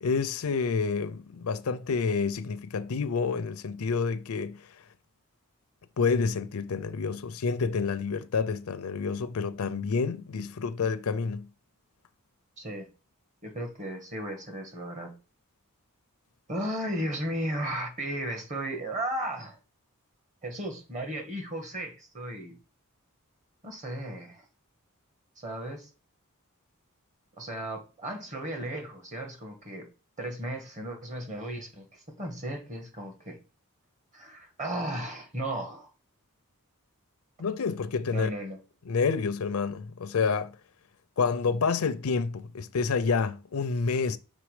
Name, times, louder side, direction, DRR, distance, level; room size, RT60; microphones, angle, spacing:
voice 1, 0.0-4.7 6.0-11.5 37.4-38.3 38.9-40.5 41.2-44.2, left 5 dB, 75° left, 0.5 m, -28 dB
voice 2, 12.6-12.9 13.4-15.1 16.5-19.6 20.4-22.6 23.6-24.4 25.4-25.9 27.4-29.9 30.2-33.4 34.1-35.9 38.1-38.6, right 1 dB, 35° right, 1.5 m, -35 dB
6.2 x 3.7 x 4.9 m
head